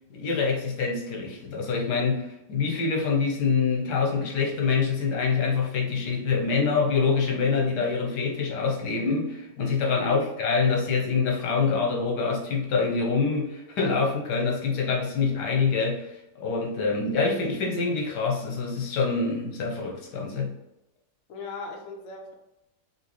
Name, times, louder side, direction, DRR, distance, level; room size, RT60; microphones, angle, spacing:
voice 1, 0.1-16.1 16.4-20.5, left 4 dB, 85° left, -1 dB, 1.5 m, -25 dB
voice 2, 10.0-10.4 21.3-22.3, left 4 dB, 60° left, 1 dB, 1.0 m, -39 dB
6.0 x 2.6 x 3.0 m, 0.91 s
omnidirectional pair, 1.7 m